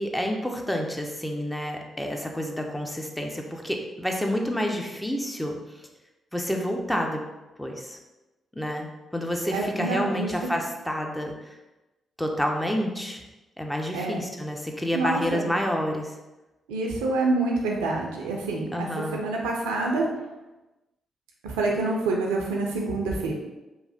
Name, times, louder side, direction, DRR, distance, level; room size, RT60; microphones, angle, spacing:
voice 1, 0.0-5.9 6.3-7.2 7.6-8.0 8.6-11.6 12.2-13.2 13.6-16.1 18.7-19.2, equal, 10° left, 2 dB, 0.5 m, -29 dB
voice 2, 9.5-10.3 13.9-14.2 14.9-15.5 16.7-18.9 19.1-20.1 21.4-23.3, right 3 dB, 85° right, 0 dB, 0.4 m, -27 dB
3.0 x 2.0 x 2.7 m, 1.0 s
hypercardioid pair, 40°, 0 cm